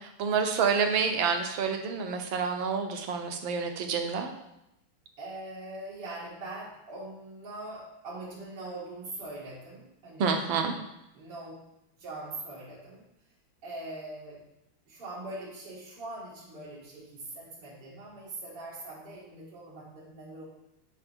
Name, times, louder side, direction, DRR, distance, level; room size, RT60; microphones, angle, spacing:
voice 1, 0.0-4.3 10.2-10.7, right 5 dB, 70° right, 5 dB, 1.5 m, -28 dB
voice 2, 5.2-10.4 11.1-11.6 12.0-13.0 13.6-14.4 14.9-20.4, right 2 dB, 85° right, -8 dB, 2.8 m, -42 dB
10.5 x 5.2 x 3.6 m, 0.85 s
omnidirectional pair, 2.4 m